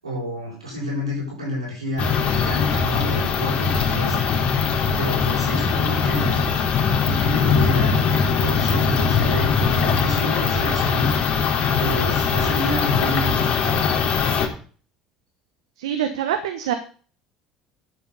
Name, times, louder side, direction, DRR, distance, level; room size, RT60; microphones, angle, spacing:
voice 1, 0.0-4.2 5.0-6.5 7.0-11.1 11.8-13.9, left 1 dB, 90° right, -3 dB, 7.3 m, -29 dB
sound 1, 2.0-14.5, left 6 dB, 55° left, 3.0 m, -21 dB
voice 2, 15.8-16.7, right 9 dB, 75° right, 8 dB, 1.1 m, -25 dB
11.5 x 8.0 x 5.5 m, 0.41 s
figure-of-eight pair, 60°, 3 cm